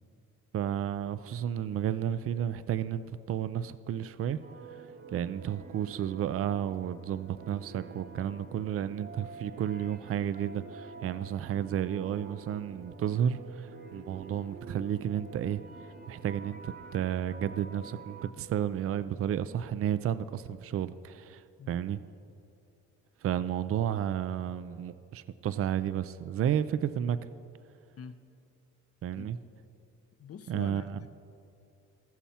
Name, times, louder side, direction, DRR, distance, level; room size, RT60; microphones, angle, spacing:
voice 1, 0.5-4.4 5.1-15.6 16.1-22.0 23.2-27.2 29.0-29.4 30.5-30.8, right 9 dB, 50° right, 14 dB, 0.5 m, -32 dB
sound 1, 4.4-18.3, right 4 dB, 30° right, 1.0 m, -49 dB
voice 2, 30.2-31.1, left 7 dB, 50° left, 9 dB, 0.8 m, -45 dB
20.0 x 7.2 x 4.3 m, 2.5 s
cardioid pair, 90°, 30 cm